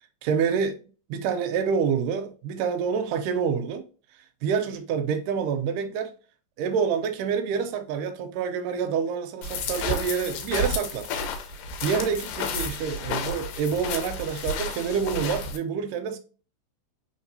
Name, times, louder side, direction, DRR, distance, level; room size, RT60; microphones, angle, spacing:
voice 1, 0.2-0.8 1.1-3.8 4.4-6.1 6.6-11.1 11.8-16.2, right 6 dB, 80° right, 2.1 m, -27 dB
sound 1, 9.4-15.6, left 3 dB, 80° left, 2.3 m, -31 dB
4.7 x 3.7 x 2.6 m
omnidirectional pair, 4.0 m